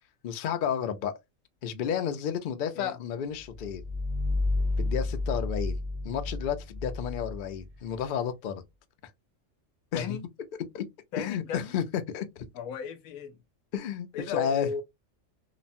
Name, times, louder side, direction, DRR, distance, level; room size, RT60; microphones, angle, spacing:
voice 1, 0.2-1.1 1.6-3.8 4.8-5.8 6.0-8.6 9.9-10.2 10.7-10.8 11.2-12.5 13.7-14.7, left 8 dB, 65° left, 0.5 m, -31 dB
sound 1, 3.4-8.0, left 2 dB, 50° right, 0.6 m, -31 dB
voice 2, 11.1-11.7 12.5-13.4 14.1-14.8, left 7 dB, 90° left, 1.0 m, -35 dB
3.0 x 2.1 x 2.5 m
omnidirectional pair, 1.4 m